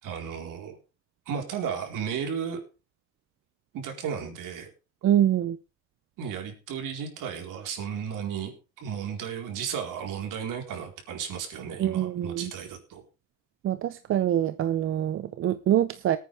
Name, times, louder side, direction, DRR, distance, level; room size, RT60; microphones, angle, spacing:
voice 1, 0.0-0.8 1.3-2.6 3.7-4.7 6.2-13.0, right 7 dB, 50° right, 4.2 m, -34 dB
voice 2, 5.0-5.6 11.8-12.5 13.6-16.2, right 11 dB, 30° right, 0.6 m, -25 dB
18.5 x 9.4 x 3.4 m
supercardioid pair, 115°, 42 cm